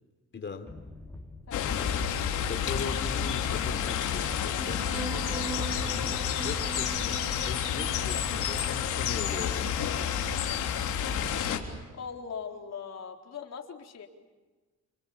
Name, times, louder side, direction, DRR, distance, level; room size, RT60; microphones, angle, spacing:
voice 1, 0.3-0.7 2.5-9.9, left 4 dB, 40° left, 7 dB, 4.1 m, -40 dB
sound 1, 0.7-10.6, left 2 dB, 5° left, 6.4 m, -46 dB
sound 2, 1.5-11.6, left 8 dB, 80° left, 3.6 m, -30 dB
sound 3, 4.5-11.4, right 3 dB, 15° right, 2.9 m, -42 dB
voice 2, 11.9-14.1, left 6 dB, 55° left, 2 dB, 4.2 m, -40 dB
29.5 x 27.5 x 7.3 m, 1.3 s
cardioid pair, 90°, 30 cm